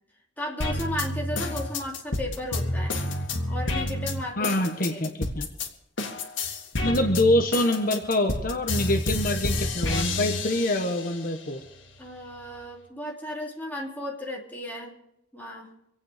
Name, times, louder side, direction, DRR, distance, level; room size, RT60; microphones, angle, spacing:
voice 1, 0.4-3.0 3.5-4.6 4.8-5.0 12.0-15.0 15.3-15.7, left 1 dB, 10° left, -3 dB, 2.9 m, -34 dB
sound 1, 0.6-5.7 6.0-11.2 11.6-12.6, left 2 dB, 85° left, 2.0 m, -29 dB
voice 2, 4.4-5.5 6.8-11.6, left 1 dB, 50° left, 4 dB, 1.3 m, -25 dB
26.0 x 8.8 x 5.1 m, 0.82 s
head